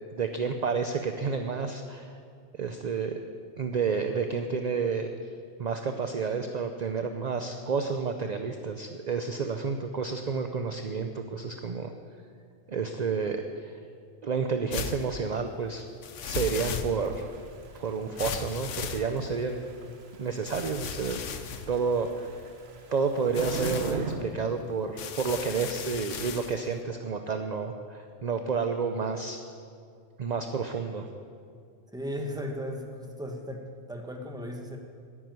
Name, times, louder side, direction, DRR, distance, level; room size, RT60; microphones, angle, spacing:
voice 1, 0.1-2.1 2.6-3.1 3.6-5.1 5.6-11.9 12.7-13.7 14.2-15.8 16.2-17.3 17.7-19.6 20.2-21.2 21.7-22.3 22.9-29.4 30.2-31.1, right 5 dB, 45° right, 6 dB, 0.6 m, -30 dB
sound 1, 14.7-15.1 16.0-17.2 18.2-19.5 20.5-22.5 23.2-24.0 25.0-26.6, left 7 dB, 85° left, 1.2 m, -36 dB
Thunder / Rain, 17.0-24.2, right 5 dB, 60° right, 1.2 m, -40 dB
voice 2, 31.9-34.8, equal, 5° right, 2 dB, 1.1 m, -36 dB
9.7 x 9.7 x 9.4 m, 2.2 s
omnidirectional pair, 1.2 m